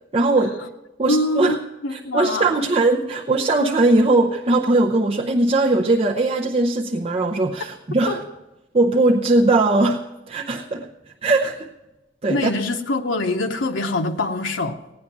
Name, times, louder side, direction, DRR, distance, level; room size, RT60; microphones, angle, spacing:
voice 1, 0.1-0.5 1.0-1.6 1.9-8.2 8.7-10.0 10.3-10.9 11.2-11.7 12.2-12.5, right 2 dB, 35° right, 0.7 m, -19 dB
voice 2, 1.1-2.7 8.1-8.2 12.3-14.8, left 2 dB, 85° left, 0.9 m, -24 dB
17.0 x 9.8 x 6.0 m
head